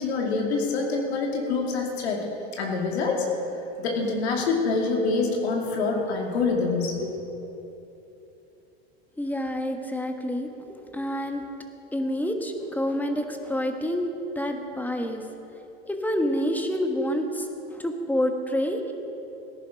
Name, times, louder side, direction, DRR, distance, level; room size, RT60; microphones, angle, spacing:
voice 1, 0.0-2.2 2.5-3.3 3.8-7.1, left 4 dB, 80° left, 0 dB, 2.5 m, -26 dB
voice 2, 9.2-11.4 11.9-14.1 14.3-15.2 15.9-18.9, equal, 5° left, 5 dB, 1.4 m, -28 dB
17.5 x 10.5 x 5.0 m, 3.0 s
hypercardioid pair, 105°, 32 cm